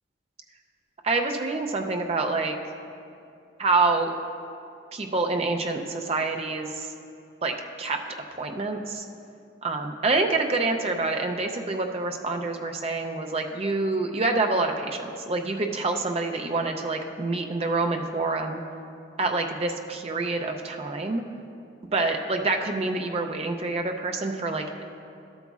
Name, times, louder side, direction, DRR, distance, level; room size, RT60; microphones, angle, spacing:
voice 1, 1.0-2.5 3.6-4.1 4.9-6.9 7.4-8.0 8.4-9.0 9.6-18.6 19.2-21.2 21.9-24.8, right 3 dB, 30° right, 4 dB, 0.5 m, -27 dB
12.5 x 7.9 x 2.4 m, 2.5 s
head